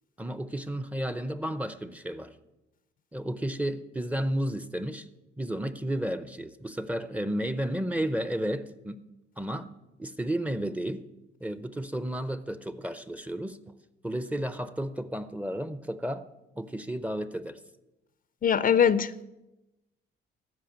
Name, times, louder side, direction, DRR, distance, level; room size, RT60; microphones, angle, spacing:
voice 1, 0.2-2.3 3.1-5.1 5.4-9.0 9.4-9.7 10.0-11.1 11.4-13.6 14.0-16.3 16.6-17.6, right 1 dB, 5° right, 13 dB, 0.6 m, -32 dB
voice 2, 18.4-19.2, left 8 dB, 45° left, 15 dB, 0.5 m, -22 dB
13.5 x 5.0 x 8.5 m, 0.97 s
cardioid pair, 90°, 20 cm